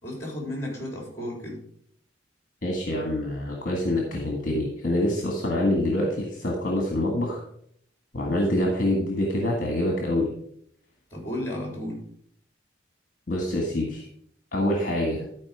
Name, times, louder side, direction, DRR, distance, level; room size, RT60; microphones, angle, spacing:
voice 1, 0.0-1.6 11.1-12.0, left 1 dB, 15° left, 0 dB, 3.5 m, -33 dB
voice 2, 2.6-7.4 8.1-10.3 13.3-14.1 14.5-15.2, left 1 dB, 45° left, 1 dB, 1.6 m, -26 dB
12.0 x 4.8 x 4.9 m, 0.66 s
head